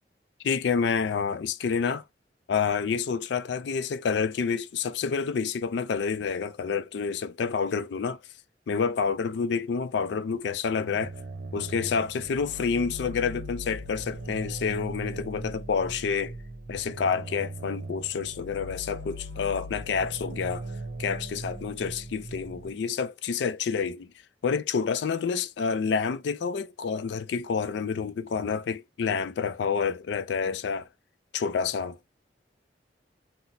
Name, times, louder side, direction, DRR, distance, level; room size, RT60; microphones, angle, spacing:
voice 1, 0.4-2.0 2.5-8.2 8.7-11.1 11.5-16.4 16.7-20.7 21.0-24.1 24.4-30.9 31.3-32.0, left 5 dB, 80° left, 0.4 m, -28 dB
sound 1, 10.7-22.7, right 1 dB, 55° right, 0.8 m, -39 dB
4.0 x 2.0 x 2.6 m
head